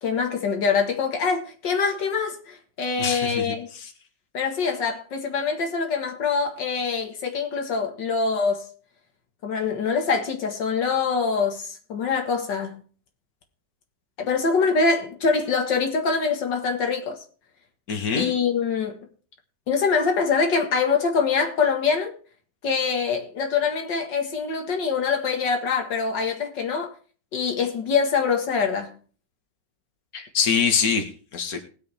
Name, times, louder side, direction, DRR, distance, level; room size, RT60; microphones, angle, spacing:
voice 1, 0.0-3.7 4.3-8.7 9.4-12.8 14.2-17.2 18.1-19.0 19.7-22.1 22.6-26.9 27.3-28.9, left 5 dB, 90° left, 2.4 m, -24 dB
voice 2, 3.0-3.4 3.7-3.9 17.9-18.3 30.1-31.6, left 6 dB, 55° left, 2.3 m, -24 dB
20.0 x 7.6 x 3.5 m
omnidirectional pair, 1.9 m